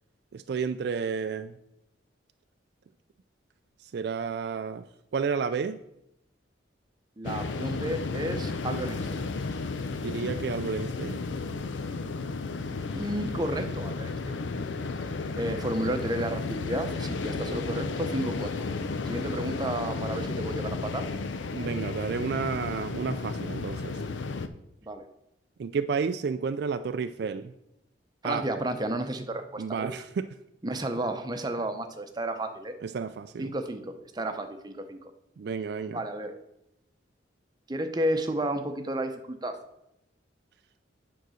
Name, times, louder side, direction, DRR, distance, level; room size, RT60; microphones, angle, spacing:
voice 1, 0.3-1.6 3.8-4.8 5.1-5.8 10.0-11.2 21.5-24.0 25.6-27.5 28.2-28.5 29.6-30.3 32.8-33.5 35.4-36.0, right 5 dB, 60° right, 10 dB, 0.3 m, -31 dB
sound 1, 7.2-24.5, left 3 dB, 80° left, 0.6 m, -33 dB
voice 2, 7.2-9.3 12.9-14.7 15.4-18.7 19.0-21.1 24.8-25.0 28.2-30.0 30.6-32.7 33.4-35.1 35.9-36.4 37.7-39.6, right 1 dB, 20° right, 6 dB, 0.7 m, -32 dB
9.2 x 3.9 x 6.3 m, 0.83 s
head